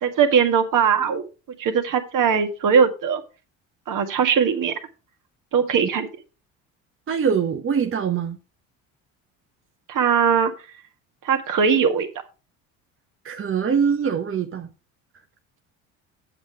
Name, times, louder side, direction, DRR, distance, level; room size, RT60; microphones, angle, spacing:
voice 1, 0.0-1.3 1.6-3.2 3.9-4.7 5.5-6.1 9.9-10.5 11.2-12.1, right 6 dB, 55° right, 1.9 m, -20 dB
voice 2, 7.1-8.4 13.2-14.7, right 7 dB, 35° right, 1.0 m, -23 dB
8.1 x 7.6 x 4.6 m
hypercardioid pair, 65°, 39 cm